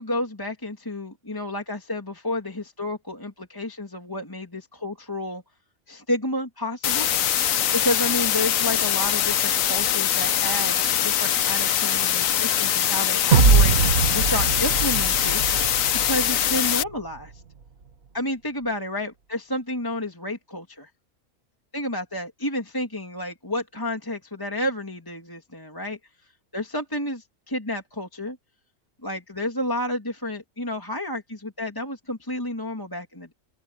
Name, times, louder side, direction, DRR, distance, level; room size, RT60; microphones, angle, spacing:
voice 1, 0.0-5.4 5.9-7.1 7.7-15.4 15.9-17.4 18.1-20.9 21.7-26.0 26.5-28.4 29.0-33.3, left 1 dB, 15° left, 2.3 m, -30 dB
sound 1, 6.8-16.8, left 10 dB, 70° left, 1.2 m, -23 dB
sound 2, 13.3-16.6, right 5 dB, 70° right, 2.1 m, -21 dB
open air
omnidirectional pair, 1.5 m